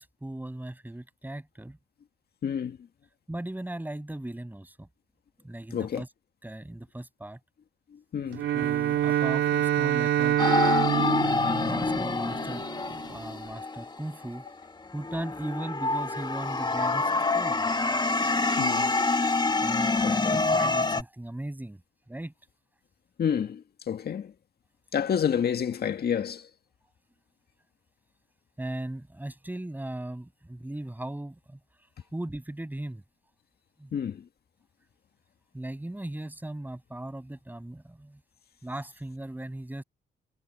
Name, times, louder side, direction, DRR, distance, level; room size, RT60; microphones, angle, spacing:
voice 1, 0.0-1.8 3.3-4.9 5.4-6.1 6.4-7.4 8.5-14.4 14.9-17.7 19.6-21.8 22.1-22.3 28.6-31.6 32.1-33.0 33.8-33.9 35.5-38.2 38.6-39.8, right 1 dB, 10° right, 7.4 m, -38 dB
voice 2, 2.4-2.8 5.7-6.0 8.1-8.4 18.6-18.9 20.0-20.4 23.2-24.3 24.9-26.5 33.9-34.2, left 8 dB, 50° left, 1.9 m, -29 dB
Bowed string instrument, 8.3-12.7, right 11 dB, 75° right, 3.2 m, -26 dB
sound 1, 10.4-14.4 15.0-21.0, left 3 dB, 20° left, 1.9 m, -26 dB
cardioid pair, 90°, 20 cm